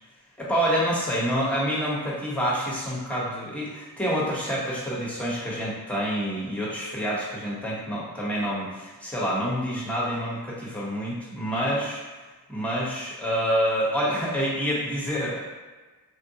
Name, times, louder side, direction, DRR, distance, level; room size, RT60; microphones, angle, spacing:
voice 1, 0.4-12.0 12.5-15.4, equal, 5° left, -6 dB, 0.9 m, -27 dB
3.6 x 2.2 x 2.7 m, 1.3 s
wide cardioid pair, 95°, 38 cm